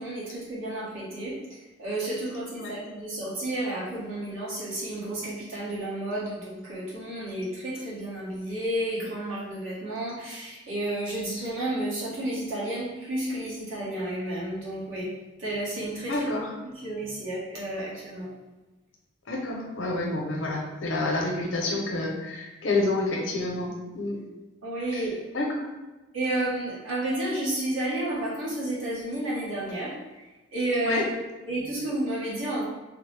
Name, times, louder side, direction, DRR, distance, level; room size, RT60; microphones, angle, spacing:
voice 1, 0.0-15.1 15.4-16.3 16.6-18.3 24.6-25.2 26.1-30.2 30.5-31.0 31.4-32.6, right 1 dB, 85° right, -7 dB, 1.2 m, -31 dB
voice 2, 16.1-16.4 19.3-24.2 25.3-25.7 30.9-31.0, left 2 dB, 75° left, -1 dB, 0.7 m, -28 dB
3.4 x 2.1 x 3.2 m, 1.2 s
head